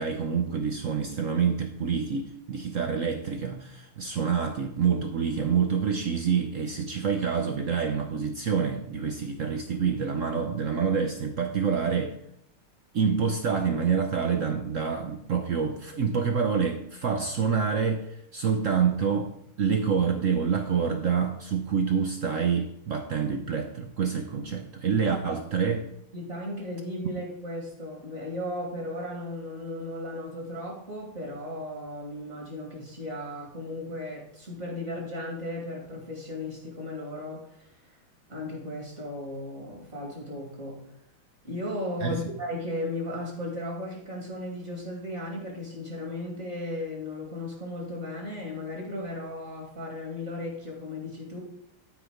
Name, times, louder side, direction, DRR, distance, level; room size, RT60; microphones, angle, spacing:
voice 1, 0.0-12.2 12.9-19.3 19.6-25.9 42.0-42.2, right 6 dB, 75° right, 6 dB, 0.7 m, -27 dB
voice 2, 26.1-38.0 38.3-40.9 41.4-51.4, left 1 dB, 35° right, -2 dB, 2.7 m, -36 dB
12.5 x 5.1 x 5.1 m, 0.77 s
omnidirectional pair, 2.3 m